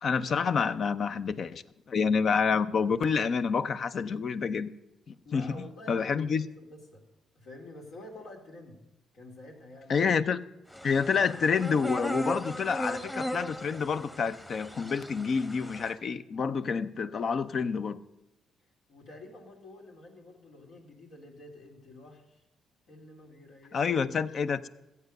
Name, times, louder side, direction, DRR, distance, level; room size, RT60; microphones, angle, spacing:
voice 1, 0.0-4.7 5.1-5.6 5.9-6.5 9.9-10.4 10.8-18.0 23.7-24.7, left 5 dB, 55° left, 0.6 m, -28 dB
voice 2, 5.2-7.0 7.3-8.8 9.1-10.1 18.9-22.4 22.9-23.8, left 1 dB, 75° left, 2.8 m, -49 dB
sound 1, 10.7-15.9, equal, 10° left, 1.2 m, -37 dB
14.5 x 8.3 x 6.6 m
cardioid pair, 90°, 0 cm